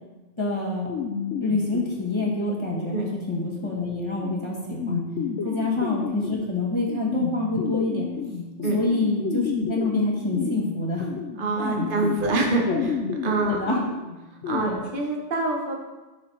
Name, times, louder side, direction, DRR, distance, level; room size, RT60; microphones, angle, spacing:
voice 1, 0.4-0.9 1.4-5.0 5.4-8.1 8.7-11.1 11.6-11.9 12.7-12.8 13.5-13.9 14.6-14.8, left 2 dB, 25° left, -4 dB, 1.8 m, -26 dB
sound 1, 0.9-14.6, left 6 dB, 80° left, 1.0 m, -32 dB
voice 2, 11.4-12.9 13.2-13.6 14.4-15.7, right 3 dB, 50° right, 1 dB, 1.3 m, -26 dB
6.5 x 6.2 x 4.5 m, 1.2 s
omnidirectional pair, 1.2 m